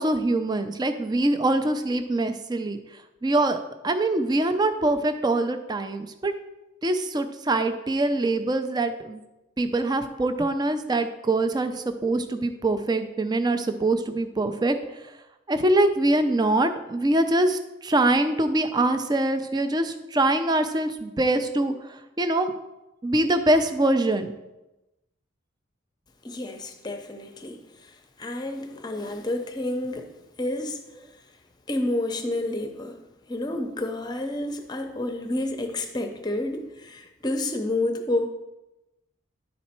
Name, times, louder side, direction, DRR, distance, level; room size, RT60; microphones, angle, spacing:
voice 1, 0.0-2.8 3.2-3.6 3.8-6.3 6.8-9.2 9.6-15.0 15.5-22.5 23.0-24.3 28.9-29.1, right 2 dB, 20° right, 9 dB, 0.4 m, -24 dB
voice 2, 26.2-27.6 28.2-30.1 30.4-30.8 31.7-33.0 33.3-38.3, left 1 dB, 20° left, 5 dB, 0.7 m, -29 dB
10.5 x 4.2 x 4.3 m, 0.99 s
head